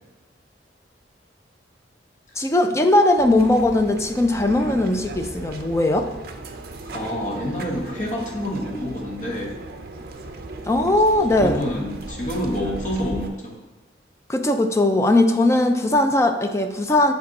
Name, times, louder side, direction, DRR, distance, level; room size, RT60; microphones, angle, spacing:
voice 1, 2.4-6.1 10.7-11.6 14.3-17.1, left 1 dB, 15° left, 6 dB, 0.4 m, -19 dB
sound 1, 3.2-13.3, right 2 dB, 55° right, 0.5 m, -37 dB
voice 2, 6.9-9.5 11.4-13.5, equal, 45° left, -3 dB, 1.4 m, -27 dB
7.7 x 3.5 x 4.1 m, 1.1 s
head